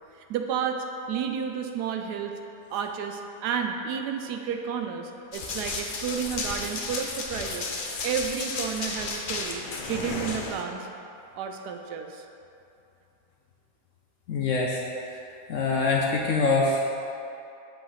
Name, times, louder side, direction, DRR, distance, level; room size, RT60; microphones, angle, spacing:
voice 1, 0.3-2.3 2.7-7.7 8.0-9.6 9.9-10.9 11.4-12.2, right 7 dB, 80° right, 4 dB, 1.1 m, -31 dB
Run, 5.3-10.6, left 3 dB, 90° left, 0.4 m, -33 dB
voice 2, 14.3-14.8 15.1-15.2 15.5-16.8, left 3 dB, 65° left, -2 dB, 0.8 m, -24 dB
7.9 x 3.9 x 4.8 m, 2.7 s
omnidirectional pair, 1.8 m